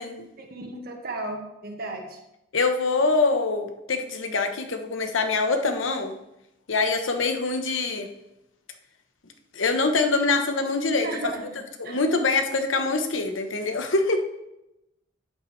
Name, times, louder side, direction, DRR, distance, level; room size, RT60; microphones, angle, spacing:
voice 1, 0.4-2.2 11.0-11.6 11.8-12.0, right 2 dB, 50° right, 2 dB, 1.5 m, -34 dB
voice 2, 2.5-6.1 6.7-8.1 9.5-11.1 11.8-14.2, left 3 dB, 75° left, 6 dB, 1.0 m, -24 dB
10.5 x 8.2 x 3.3 m, 0.90 s
head